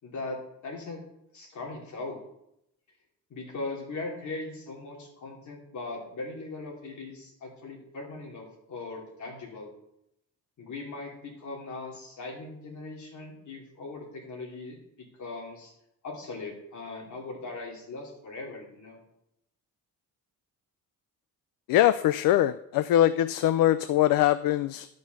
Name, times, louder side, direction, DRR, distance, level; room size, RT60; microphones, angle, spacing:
voice 1, 0.0-1.0 1.3-2.2 3.3-9.7 10.6-15.7 16.0-19.0, left 3 dB, 55° left, 0 dB, 3.1 m, -39 dB
voice 2, 21.7-24.9, left 13 dB, 70° left, 14 dB, 0.5 m, -22 dB
11.5 x 5.4 x 6.8 m, 0.82 s
cardioid pair, 155°, 35 cm